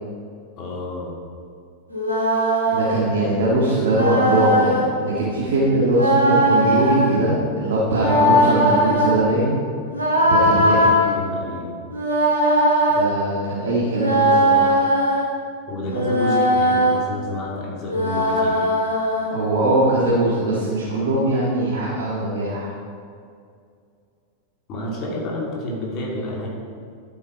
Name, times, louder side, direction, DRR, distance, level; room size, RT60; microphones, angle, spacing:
voice 1, 0.6-1.2 10.5-11.7 15.7-18.7 24.7-26.5, left 1 dB, 40° left, -2 dB, 2.8 m, -29 dB
sound 1, 1.9-3.0 3.9-4.9 5.9-7.1 7.9-9.1 9.9-11.0 11.9-13.0 13.9-15.3 15.9-17.0 17.9-19.3, equal, 90° left, 2.5 m, -19 dB
voice 2, 2.7-9.6 10.2-10.9 12.9-14.7 19.3-22.7, right 1 dB, 60° right, -6 dB, 1.9 m, -21 dB
12.5 x 8.0 x 4.5 m, 2.4 s
figure-of-eight pair, 90°, 0 cm